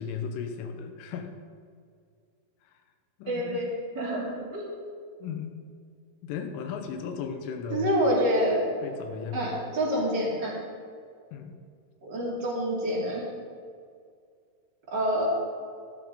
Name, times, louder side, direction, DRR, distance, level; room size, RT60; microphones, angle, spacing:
voice 1, 0.0-1.3 3.2-3.7 5.2-5.6 6.2-7.9 8.8-9.6 11.3-11.6, left 6 dB, 80° left, 5 dB, 3.4 m, -36 dB
voice 2, 3.3-3.7 3.9-4.7 7.7-8.7 9.3-10.5 12.0-13.2 14.9-15.3, equal, 30° right, -5 dB, 2.5 m, -27 dB
14.5 x 12.0 x 4.1 m, 2.2 s
omnidirectional pair, 5.7 m